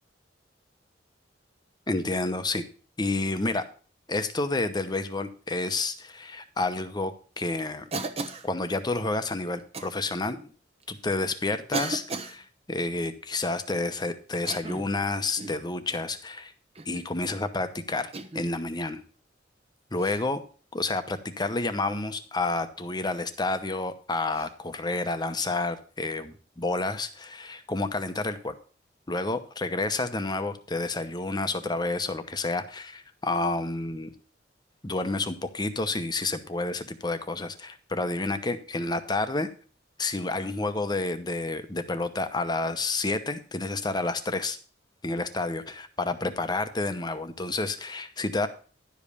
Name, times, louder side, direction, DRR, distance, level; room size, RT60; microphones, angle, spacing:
voice 1, 1.9-2.6 3.0-3.6 4.1-7.9 8.4-10.5 10.9-16.5 16.9-19.0 19.9-20.4 20.7-28.5 29.1-34.1 34.8-39.5 40.0-44.6 45.0-48.5, left 2 dB, 25° left, 9 dB, 0.8 m, -30 dB
Cough, 7.9-8.5 9.7-9.9 10.8-10.9 11.7-12.4 14.3-14.9 15.4-15.6 16.7-17.1 18.1-18.5 20.0-20.2 22.4-22.6 24.3-24.5, right 3 dB, 35° right, 1.0 m, -35 dB
11.5 x 5.3 x 6.8 m, 0.39 s
head